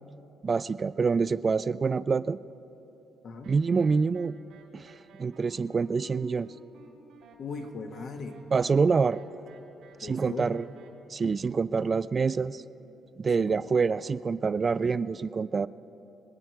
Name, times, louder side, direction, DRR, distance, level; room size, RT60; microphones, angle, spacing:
voice 1, 0.4-2.4 3.5-4.4 4.7-6.5 8.5-9.2 10.0-10.7 11.1-12.6 13.2-15.7, right 5 dB, 40° right, 15 dB, 0.3 m, -26 dB
sound 1, 3.4-10.9, right 6 dB, 85° right, 2.2 m, -56 dB
voice 2, 7.4-8.4 10.0-10.6 13.2-13.6, left 4 dB, 60° left, 5 dB, 1.3 m, -39 dB
25.0 x 8.9 x 4.6 m, 2.9 s
cardioid pair, 90°, 0 cm